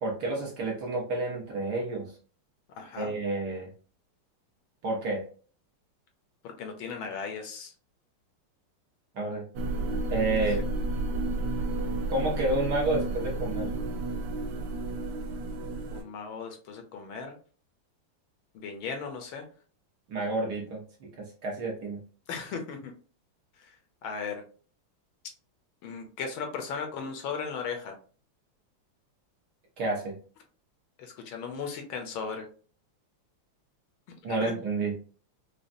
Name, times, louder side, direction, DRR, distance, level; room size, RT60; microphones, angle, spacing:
voice 1, 0.0-2.1 2.9-3.7 4.8-5.2 9.1-9.4 10.1-10.6 12.1-13.7 20.1-22.0 29.8-30.1 34.2-34.9, right 2 dB, 60° right, -1 dB, 1.3 m, -30 dB
voice 2, 2.8-3.1 6.4-7.7 10.5-10.6 15.9-17.4 18.5-19.4 22.3-22.9 23.6-23.7 24.0-24.4 25.8-28.0 31.0-32.5 34.3-34.6, left 5 dB, 75° left, 4 dB, 1.4 m, -37 dB
sound 1, 9.6-16.0, right 2 dB, 85° right, 1.5 m, -31 dB
5.0 x 2.3 x 2.5 m, 0.40 s
omnidirectional pair, 2.4 m